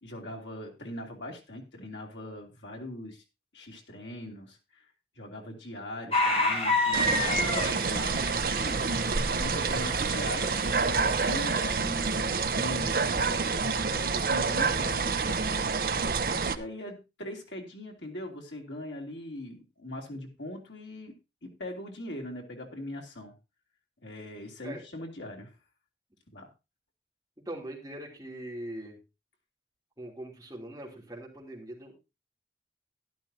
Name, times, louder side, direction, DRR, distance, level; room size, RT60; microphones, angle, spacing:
voice 1, 0.0-3.2 3.5-4.8 5.1-8.8 9.4-10.6 10.9-15.9 16.5-21.1 21.4-23.3 24.0-25.5 26.3-26.5, left 1 dB, 90° left, 1 dB, 2.8 m, -41 dB
sound 1, 6.1-11.8, left 2 dB, 35° left, 1.4 m, -31 dB
sound 2, 6.9-16.6, right 4 dB, 50° right, 0.7 m, -28 dB
voice 2, 27.4-29.0 30.0-31.9, right 1 dB, 20° right, -2 dB, 3.0 m, -41 dB
12.5 x 11.0 x 2.8 m, 0.26 s
head